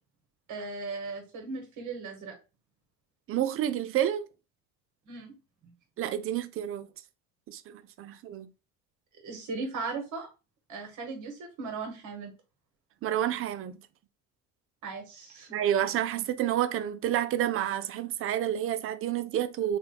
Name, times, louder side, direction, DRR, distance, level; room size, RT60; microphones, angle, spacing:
voice 1, 0.5-2.3 5.1-5.3 9.2-10.3 10.7-12.3 14.8-15.6, right 4 dB, 60° right, 1.5 m, -37 dB
voice 2, 3.3-4.3 6.0-6.9 7.5-8.5 13.0-13.8 15.5-19.8, right 11 dB, 40° right, 0.4 m, -29 dB
3.1 x 2.3 x 3.3 m
supercardioid pair, 90°, 34 cm